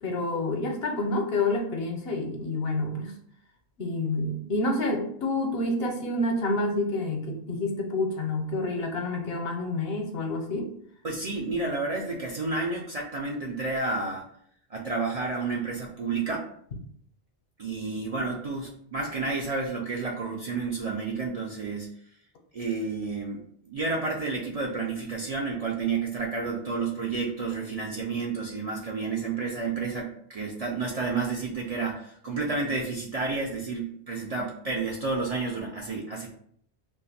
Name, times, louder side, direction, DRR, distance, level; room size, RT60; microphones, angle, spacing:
voice 1, 0.0-3.1 3.8-10.7, left 2 dB, 70° left, 3 dB, 0.8 m, -28 dB
voice 2, 11.0-14.3 14.7-16.5 17.6-21.9 22.5-23.4 23.7-36.3, right 3 dB, 50° right, -2 dB, 0.4 m, -30 dB
2.4 x 2.4 x 4.0 m, 0.64 s
omnidirectional pair, 1.1 m